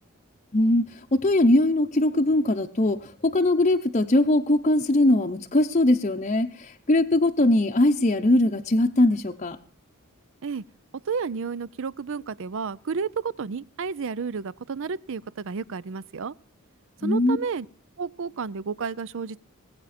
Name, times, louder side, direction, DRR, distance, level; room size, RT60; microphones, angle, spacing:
voice 1, 0.5-9.6 17.0-17.4, left 1 dB, 30° left, 0.7 m, -21 dB
voice 2, 11.1-16.3 17.0-17.7 18.0-19.4, right 5 dB, 60° right, 0.5 m, -31 dB
20.5 x 8.8 x 4.2 m
head